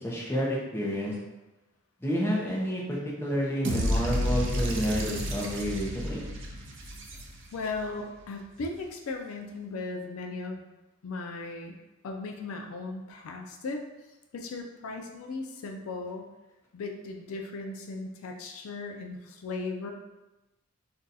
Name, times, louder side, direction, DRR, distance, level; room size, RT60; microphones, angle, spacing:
voice 1, 0.0-1.2 2.0-6.3, equal, 10° left, -4 dB, 0.5 m, -30 dB
sound 1, 3.6-7.8, equal, 55° right, 0.5 m, -31 dB
voice 2, 7.5-10.7 11.0-11.8 12.0-13.8 14.3-16.3 16.7-19.9, left 3 dB, 80° left, 2 dB, 0.4 m, -37 dB
2.6 x 2.3 x 3.9 m, 1.0 s
head